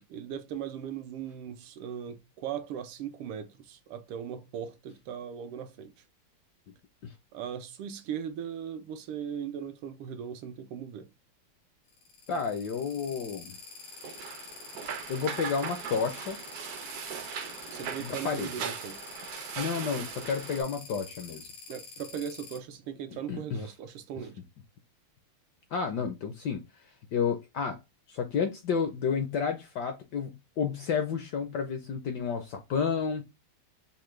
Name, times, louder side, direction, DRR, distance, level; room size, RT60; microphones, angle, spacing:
voice 1, 0.0-5.9 7.3-11.1 17.7-19.0 21.7-24.4, right 8 dB, 85° right, 1.6 m, -38 dB
sound 1, 11.9-22.6, left 5 dB, 90° left, 2.1 m, -46 dB
voice 2, 12.3-13.6 15.1-16.4 18.0-18.5 19.6-21.5 23.1-23.6 25.7-26.6 27.1-27.8 28.1-33.2, left 6 dB, 75° left, 1.0 m, -31 dB
sound 2, 13.9-20.6, right 7 dB, 70° right, 0.9 m, -39 dB
5.7 x 2.1 x 3.1 m
omnidirectional pair, 2.4 m